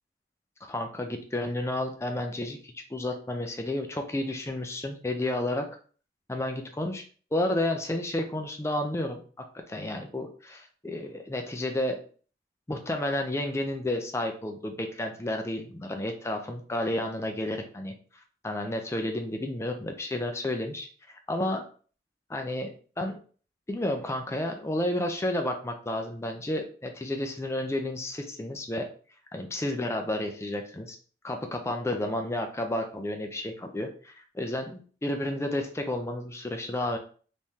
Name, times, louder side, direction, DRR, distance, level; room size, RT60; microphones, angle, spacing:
voice 1, 0.6-5.7 6.3-7.0 7.3-9.2 9.7-12.0 12.7-17.9 18.4-21.6 22.3-23.2 23.7-28.9 29.3-31.0 31.2-37.0, left 1 dB, 15° left, 4 dB, 0.4 m, -31 dB
3.5 x 3.0 x 2.7 m, 0.41 s
head